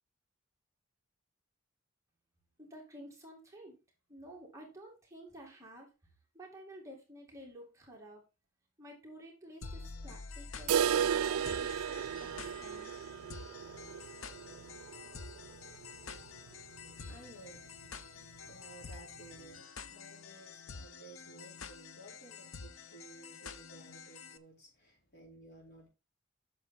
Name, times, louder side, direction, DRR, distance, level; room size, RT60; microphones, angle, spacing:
voice 1, 2.6-3.8 4.1-8.2 8.8-13.0, equal, 15° right, 2.3 m, -52 dB
sound 1, 9.6-24.4, left 5 dB, 75° left, 0.7 m, -48 dB
sound 2, 10.7-16.5 16.8-16.9 17.3-17.4 17.9-18.0 18.8-18.9, right 8 dB, 90° right, 0.3 m, -34 dB
voice 2, 15.4-25.9, right 2 dB, 55° left, 4.5 m, -57 dB
8.2 x 6.5 x 4.1 m
head